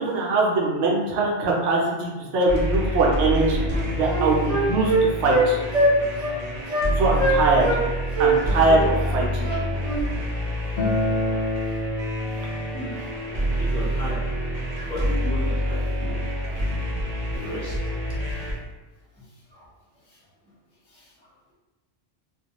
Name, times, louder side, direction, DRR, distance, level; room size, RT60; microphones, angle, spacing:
voice 1, 0.0-5.6 7.0-7.7 8.2-9.5, right 2 dB, 75° right, -2 dB, 0.9 m, -22 dB
sound 1, 2.5-18.5, equal, 55° right, 0.4 m, -27 dB
Wind instrument woodwind instrument, 3.2-3.4 3.7-5.5 5.7-5.9 6.2-6.4 6.7-6.9 7.2-7.8 8.1-10.0, right 2 dB, 35° right, 0.8 m, -23 dB
voice 2, 9.5-10.0 10.9-11.3 11.6-11.7 12.7-13.0 13.4-14.3 14.9-16.2 17.3-17.8 19.5-19.7 20.1-20.2 20.9-21.3, left 1 dB, 10° left, -8 dB, 0.4 m, -36 dB
Acoustic guitar, 10.8-16.0, left 1 dB, 70° left, 0.8 m, -30 dB
2.2 x 2.1 x 2.8 m, 1.2 s
omnidirectional pair, 1.2 m